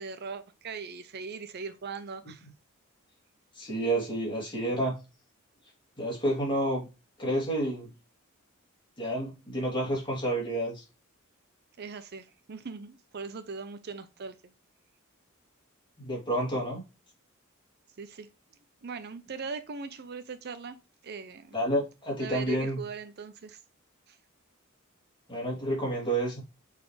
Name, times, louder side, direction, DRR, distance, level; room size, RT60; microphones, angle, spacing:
voice 1, 0.0-2.5 11.8-14.5 18.0-18.3 18.8-20.8 21.0-21.6 22.2-23.6 24.1-24.2, right 5 dB, 50° right, 0.6 m, -40 dB
voice 2, 3.6-5.0 6.0-6.9 7.2-7.9 9.0-10.8 16.0-16.8 21.5-22.8 25.3-26.4, right 1 dB, 25° left, 2.8 m, -29 dB
7.0 x 4.2 x 3.2 m
head